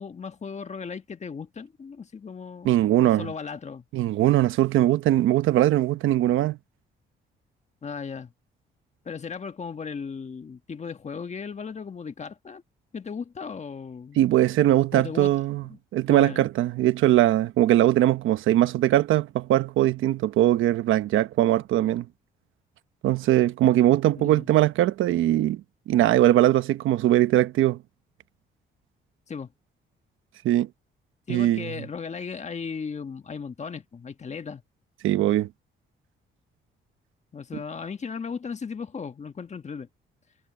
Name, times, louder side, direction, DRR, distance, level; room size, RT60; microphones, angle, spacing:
voice 1, 0.0-3.8 7.8-8.3 9.0-12.6 12.9-14.2 14.9-15.4 15.7-15.8 16.1-16.5 24.1-24.5 29.3-29.5 31.3-34.6 37.3-39.9, left 5 dB, 35° left, 1.5 m, -36 dB
voice 2, 2.6-3.3 3.9-6.6 14.2-15.6 15.9-22.1 23.0-25.6 25.9-27.8 30.4-30.7 31.3-31.7 35.0-35.5, right 13 dB, 85° right, 1.1 m, -21 dB
cardioid pair, 90°, 20 cm